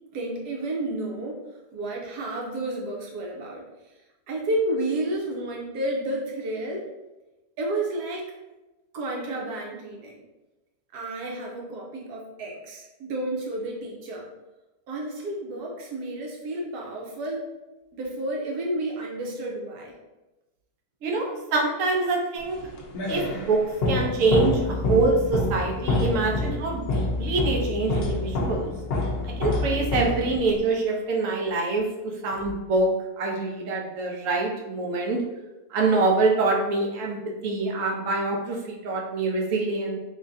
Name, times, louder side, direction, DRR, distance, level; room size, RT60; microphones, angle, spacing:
voice 1, 0.1-1.4 1.7-3.7 4.3-6.9 7.6-8.3 8.9-10.1 10.9-14.3 14.9-17.5 17.9-19.9, right 1 dB, 85° right, -1 dB, 1.3 m, -31 dB
voice 2, 21.0-22.6 23.1-28.7 29.4-32.9 33.2-35.2 35.7-40.0, right 3 dB, 65° right, 0 dB, 1.0 m, -25 dB
sound 1, 22.5-30.7, left 2 dB, 65° left, 0.6 m, -27 dB
3.6 x 3.1 x 2.6 m, 1.1 s
omnidirectional pair, 1.7 m